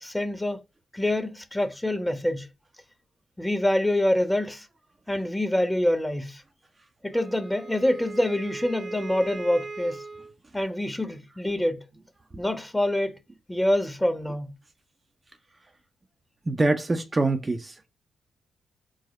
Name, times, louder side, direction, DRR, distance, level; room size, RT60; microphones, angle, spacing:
voice 1, 0.0-0.6 0.9-2.5 3.4-4.7 5.1-6.4 7.0-10.0 10.5-11.8 12.4-13.2 13.5-14.5, left 1 dB, 10° left, 0.9 m, -26 dB
Wind instrument woodwind instrument, 7.1-10.3, right 3 dB, 55° right, 0.9 m, -38 dB
voice 2, 16.5-17.8, right 2 dB, 30° right, 0.5 m, -25 dB
4.8 x 2.0 x 4.1 m
supercardioid pair, 50°, 0 cm